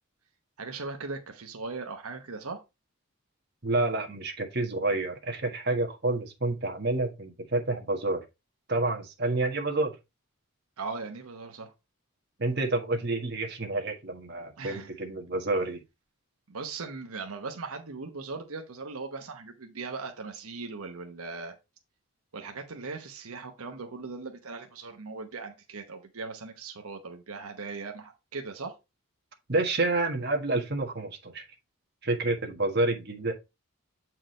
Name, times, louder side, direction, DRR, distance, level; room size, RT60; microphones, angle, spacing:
voice 1, 0.6-2.6 10.8-11.7 14.6-14.9 16.5-21.6 22.3-28.7, right 4 dB, 85° right, 1.0 m, -39 dB
voice 2, 3.6-8.2 8.7-9.9 12.4-15.8 29.5-31.4 32.0-33.3, right 2 dB, 50° right, 1.5 m, -29 dB
7.7 x 4.8 x 3.2 m
head